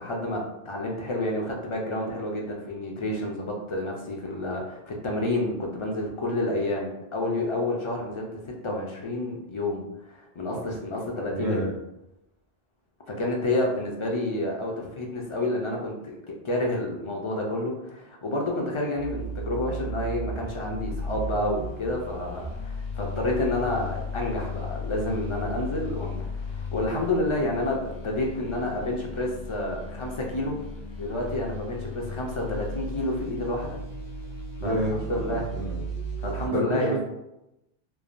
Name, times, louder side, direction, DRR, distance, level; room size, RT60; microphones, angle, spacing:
voice 1, 0.0-11.6 13.1-30.5 31.0-33.8 34.6-34.7 35.1-35.5 36.2-37.0, left 1 dB, 50° left, -1 dB, 0.4 m, -29 dB
voice 2, 11.3-11.7 34.6-35.8 36.5-37.0, right 1 dB, 45° right, -5 dB, 0.5 m, -28 dB
sound 1, 18.9-36.5, left 1 dB, 75° left, 1.0 m, -35 dB
3.2 x 2.1 x 2.4 m, 0.88 s
omnidirectional pair, 1.0 m